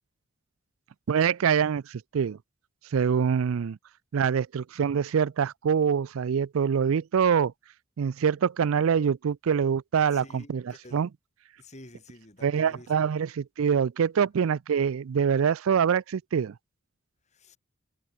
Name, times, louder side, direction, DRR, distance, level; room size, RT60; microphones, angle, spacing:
voice 1, 1.1-2.4 2.9-3.8 4.1-7.5 8.0-10.6 10.9-11.1 12.4-16.5, right 7 dB, 75° right, 0.4 m, -25 dB
voice 2, 10.1-11.0 11.6-13.2 17.3-17.6, left 1 dB, 30° left, 3.5 m, -50 dB
head